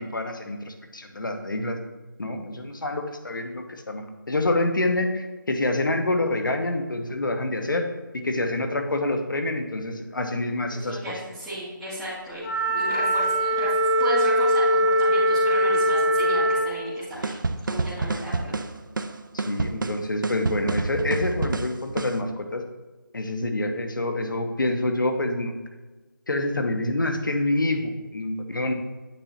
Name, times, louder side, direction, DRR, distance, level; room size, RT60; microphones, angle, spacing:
voice 1, 0.0-1.8 2.2-7.9 8.1-11.0 19.3-22.6 23.1-25.5 26.3-28.7, left 2 dB, 70° left, 5 dB, 1.0 m, -27 dB
voice 2, 10.7-17.3 17.6-18.5, right 1 dB, ahead, -16 dB, 0.6 m, -35 dB
Wind instrument woodwind instrument, 12.4-16.7, equal, 20° left, 0.9 m, -21 dB
sound 1, 17.2-22.2, right 3 dB, 70° right, 0.5 m, -28 dB
8.7 x 2.9 x 4.2 m, 1.2 s
figure-of-eight pair, 170°, 11 cm